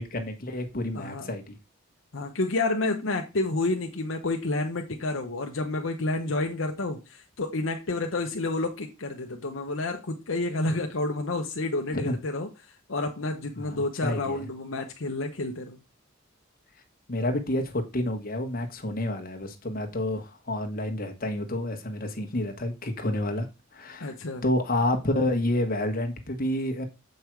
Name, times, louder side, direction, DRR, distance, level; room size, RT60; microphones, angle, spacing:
voice 1, 0.0-1.6 12.0-12.2 13.5-14.5 17.1-23.5 23.7-24.1 24.4-26.9, left 1 dB, 45° left, 1.4 m, -29 dB
voice 2, 0.9-1.3 2.1-12.5 12.9-15.8 24.0-24.4, left 2 dB, 65° left, 0.9 m, -29 dB
7.7 x 5.4 x 4.6 m
head